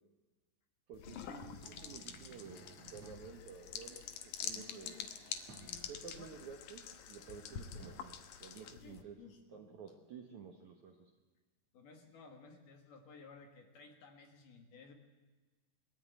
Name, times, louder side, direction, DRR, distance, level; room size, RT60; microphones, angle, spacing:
sound 1, 0.9-9.0, left 8 dB, 75° left, 1.9 m, -47 dB
voice 1, 0.9-5.0 5.9-6.8 7.1-11.1, right 6 dB, 65° right, 3 dB, 1.9 m, -52 dB
sound 2, 1.4-4.3 5.5-5.9 7.8-8.9, right 4 dB, 50° right, 2.3 m, -59 dB
voice 2, 4.5-5.1 5.6-6.3 8.8-10.0 11.7-14.9, left 5 dB, 60° left, 4 dB, 2.8 m, -57 dB
22.0 x 13.5 x 9.0 m, 1.3 s
omnidirectional pair, 5.1 m